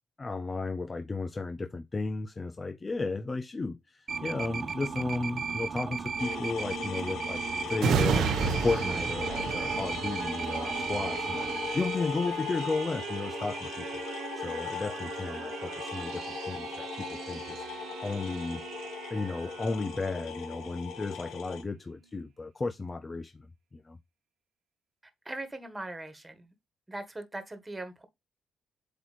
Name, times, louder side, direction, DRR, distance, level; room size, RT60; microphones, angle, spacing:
voice 1, 0.2-7.4 7.7-17.7 18.0-18.6 19.1-23.5 23.7-24.0, left 3 dB, 25° left, 0.6 m, -34 dB
sound 1, 4.1-12.0, right 5 dB, 45° right, 1.2 m, -35 dB
sound 2, 6.2-21.6, left 7 dB, 80° left, 1.6 m, -39 dB
sound 3, 7.8-21.1 21.6-21.7, right 6 dB, 75° right, 1.0 m, -35 dB
voice 2, 25.2-26.5 26.9-28.1, right 2 dB, 15° right, 1.5 m, -40 dB
8.0 x 2.9 x 4.2 m
cardioid pair, 90°, 0 cm